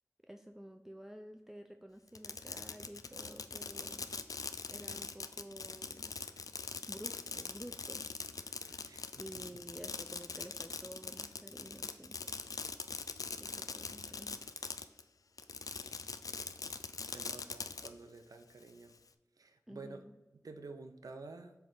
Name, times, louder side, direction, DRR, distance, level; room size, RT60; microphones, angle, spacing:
voice 1, 0.2-4.1 4.7-6.1 6.9-8.8 9.2-12.3 13.4-14.4 19.7-20.1, equal, 5° right, 6 dB, 0.4 m, -51 dB
Fireworks, 2.1-15.0 15.4-17.9, left 4 dB, 75° left, 0.4 m, -42 dB
voice 2, 8.8-9.5 17.0-18.9 19.4-20.0 20.3-21.5, right 3 dB, 90° right, 7 dB, 0.6 m, -50 dB
7.7 x 3.4 x 4.1 m, 1.1 s
wide cardioid pair, 45°, 6 cm